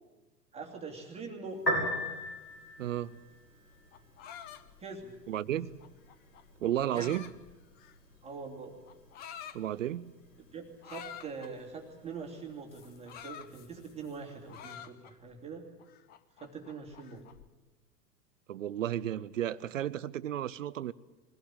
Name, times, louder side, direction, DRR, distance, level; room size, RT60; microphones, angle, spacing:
voice 1, 0.5-1.6 4.8-5.2 5.5-5.6 6.9-7.1 8.2-8.7 10.5-15.7 16.4-17.2, right 4 dB, 10° right, 0 dB, 2.4 m, -43 dB
Piano, 1.5-14.5, equal, 80° left, 6.7 m, -42 dB
voice 2, 2.8-3.2 5.3-5.7 6.6-7.2 9.5-10.1 18.5-20.9, right 11 dB, 50° right, 18 dB, 0.7 m, -33 dB
sound 1, 3.7-8.2 8.9-9.6 10.8-11.5 12.7-14.1 14.5-15.3 15.8-17.5, left 9 dB, 20° left, 0.8 m, -48 dB
22.0 x 17.0 x 9.0 m, 1.2 s
figure-of-eight pair, 100°, 49 cm